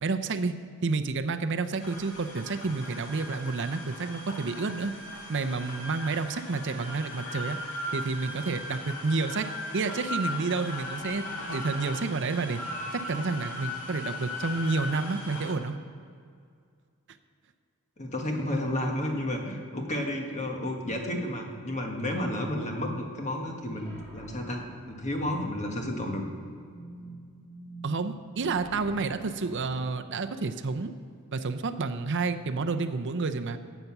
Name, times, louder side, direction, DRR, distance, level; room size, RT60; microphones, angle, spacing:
voice 1, 0.0-0.5 0.8-4.9 5.3-7.6 7.9-9.5 9.7-12.6 12.9-15.8 27.8-30.9 31.3-33.6, right 4 dB, 55° right, 8 dB, 0.6 m, -30 dB
sound 1, 1.8-15.5, left 1 dB, 55° left, 2.3 m, -38 dB
voice 2, 18.0-24.6 24.9-26.2, left 1 dB, 30° left, 2 dB, 1.5 m, -31 dB
sound 2, 23.7-29.8, right 1 dB, 10° left, 3.2 m, -47 dB
13.5 x 8.2 x 5.9 m, 2.2 s
head